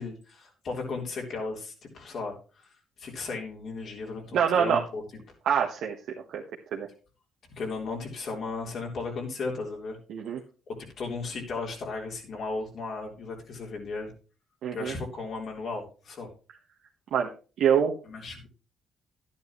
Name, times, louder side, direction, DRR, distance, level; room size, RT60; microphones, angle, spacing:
voice 1, 0.0-2.7 3.0-5.0 7.6-10.0 10.7-14.1 14.7-16.3 18.0-18.5, left 3 dB, 60° left, 0 dB, 3.6 m, -35 dB
voice 2, 4.3-4.8 5.4-6.0 6.3-6.4 6.7-6.9 10.1-10.4 14.6-14.9 17.1-17.3 17.6-18.0, right 8 dB, 80° right, 0 dB, 1.3 m, -25 dB
11.0 x 10.0 x 3.1 m, 0.34 s
cardioid pair, 90°, 0 cm